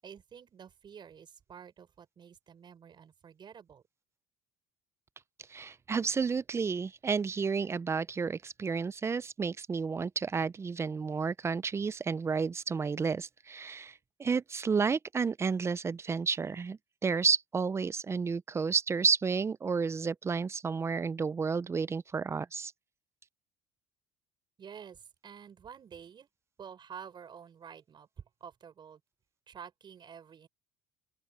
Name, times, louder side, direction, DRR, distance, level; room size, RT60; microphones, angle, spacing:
voice 1, 0.0-3.8 24.6-26.3 26.6-28.1 28.4-29.0 29.5-30.5, right 7 dB, 35° right, 6.3 m, -49 dB
voice 2, 5.5-13.9 14.2-22.7, right 5 dB, 20° right, 0.5 m, -31 dB
open air
supercardioid pair, 110°, 12 cm